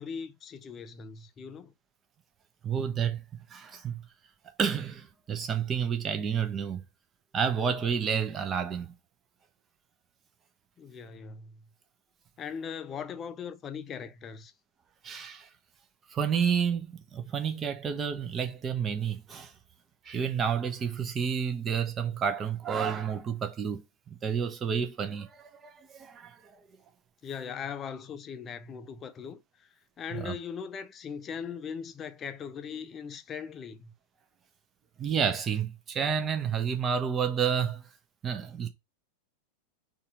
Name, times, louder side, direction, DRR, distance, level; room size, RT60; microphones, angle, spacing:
voice 1, 0.0-1.7 10.8-11.6 12.4-14.5 27.2-29.7 30.0-33.9, left 7 dB, 25° left, 0.5 m, -39 dB
voice 2, 2.6-4.0 4.6-6.8 7.3-8.9 15.0-15.5 16.1-19.5 20.0-23.8 24.2-26.5 30.1-30.4 35.0-37.8 38.2-38.7, right 7 dB, 25° right, 0.8 m, -30 dB
4.1 x 2.6 x 4.7 m
figure-of-eight pair, 90°, 0 cm